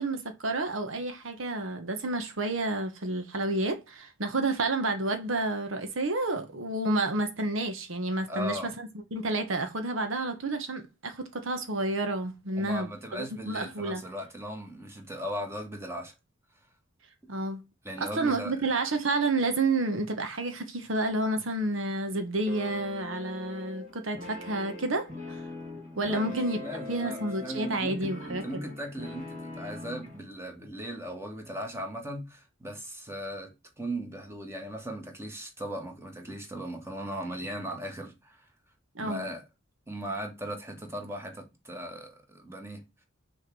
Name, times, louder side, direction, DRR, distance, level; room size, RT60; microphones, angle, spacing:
voice 1, 0.0-14.0 17.3-17.6 18.0-25.4 26.0-26.6 26.9-28.6 38.9-39.2, right 2 dB, 70° right, 1.2 m, -30 dB
voice 2, 8.3-8.7 12.6-16.1 17.8-18.6 25.9-38.4 39.0-39.4 39.9-42.8, equal, 15° right, 1.8 m, -38 dB
sound 1, 22.5-30.2, left 3 dB, 40° right, 2.7 m, -42 dB
6.4 x 3.5 x 6.0 m
head